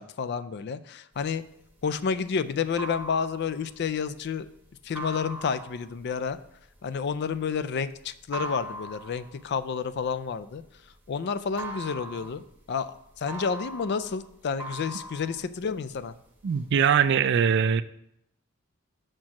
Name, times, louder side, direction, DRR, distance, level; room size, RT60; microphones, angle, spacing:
voice 1, 0.0-1.4 1.8-4.5 4.8-6.4 6.8-10.6 11.1-16.2, left 6 dB, 50° left, 14 dB, 0.4 m, -30 dB
sound 1, 1.2-11.1 11.4-16.1 16.5-17.1, right 2 dB, 10° right, 0.9 m, -41 dB
voice 2, 16.4-17.8, right 7 dB, 55° right, 13 dB, 0.3 m, -22 dB
6.2 x 4.4 x 5.8 m, 0.77 s
head